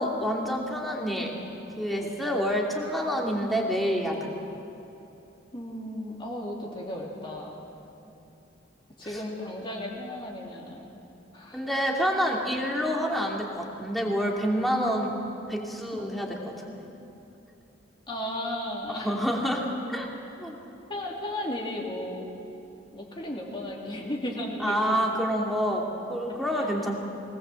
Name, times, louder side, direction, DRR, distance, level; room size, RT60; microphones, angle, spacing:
voice 1, 0.0-1.3 1.8-4.4 8.1-8.2 11.5-15.2 15.5-16.4 16.7-16.8 18.9-20.1 20.4-20.6 24.6-26.9, equal, ahead, -2 dB, 2.8 m, -28 dB
voice 2, 5.5-7.6 9.0-10.9 11.3-11.6 15.9-16.1 18.1-19.1 20.9-22.3 22.9-25.0 26.3-26.7, left 1 dB, 25° left, -2 dB, 2.8 m, -35 dB
23.5 x 19.0 x 7.7 m, 2.9 s
head